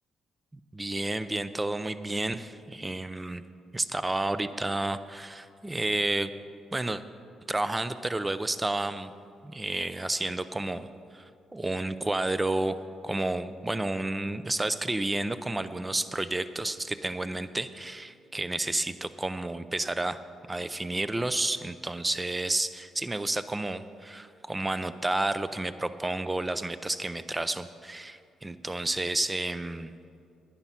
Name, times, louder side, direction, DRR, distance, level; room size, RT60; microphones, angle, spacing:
voice 1, 0.7-3.4 3.7-6.3 6.7-7.0 7.5-9.1 9.4-10.9 11.1-12.8 13.0-20.2 20.5-29.9, right 2 dB, 15° right, 13 dB, 0.5 m, -31 dB
10.5 x 10.5 x 5.7 m, 2.4 s
cardioid pair, 90°, 0 cm